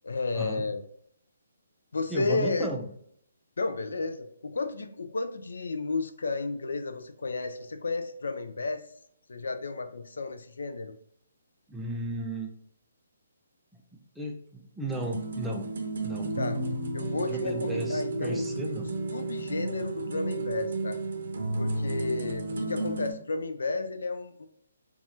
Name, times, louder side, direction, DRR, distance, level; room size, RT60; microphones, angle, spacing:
voice 1, 0.0-0.8 1.9-2.7 3.6-8.8 9.3-11.0 16.4-16.6 16.9-18.8 19.1-21.0 21.6-24.5, left 3 dB, 70° left, 8 dB, 0.4 m, -32 dB
voice 2, 2.1-2.9 11.7-12.5 13.9-15.7 16.0-16.3 17.3-18.9, right 1 dB, 5° right, -1 dB, 0.5 m, -35 dB
sound 1, 14.9-23.1, right 2 dB, 60° right, 0.6 m, -32 dB
4.0 x 2.3 x 2.7 m, 0.67 s
figure-of-eight pair, 140°, 0 cm